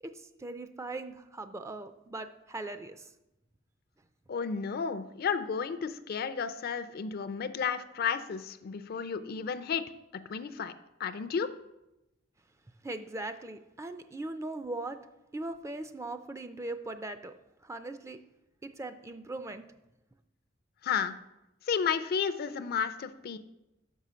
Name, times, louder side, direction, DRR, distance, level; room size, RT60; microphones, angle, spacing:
voice 1, 0.0-3.1 12.8-15.0 15.3-17.3 17.6-18.2 18.6-19.6, right 2 dB, 15° right, 10 dB, 0.3 m, -39 dB
voice 2, 4.3-9.8 10.3-10.7 11.0-11.5 20.8-21.1 21.7-23.4, left 6 dB, 55° left, 12 dB, 0.4 m, -32 dB
6.2 x 5.5 x 5.0 m, 0.92 s
head